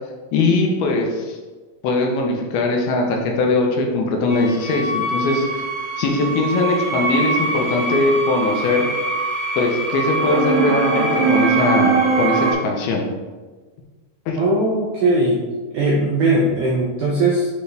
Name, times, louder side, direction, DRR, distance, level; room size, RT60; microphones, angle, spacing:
voice 1, 0.3-1.4 1.8-5.6 6.0-8.9 9.6-13.0 14.3-14.4, left 3 dB, 75° left, 1 dB, 2.5 m, -20 dB
sound 1, 4.3-12.5, right 3 dB, 60° right, 0.8 m, -22 dB
voice 2, 14.4-15.4 15.7-17.5, right 2 dB, 80° right, -4 dB, 1.8 m, -19 dB
9.2 x 3.5 x 3.2 m, 1.3 s
omnidirectional pair, 4.6 m